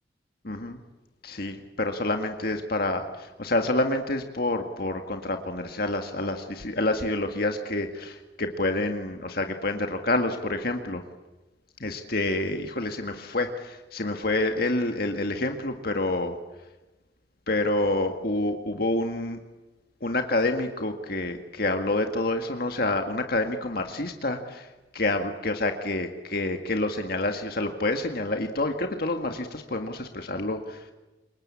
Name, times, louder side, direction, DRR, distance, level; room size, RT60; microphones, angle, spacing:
voice 1, 0.4-0.8 1.2-11.0 11.8-16.4 17.5-19.4 20.0-30.9, left 2 dB, 55° left, 5 dB, 1.9 m, -28 dB
28.0 x 24.0 x 8.5 m, 1.1 s
head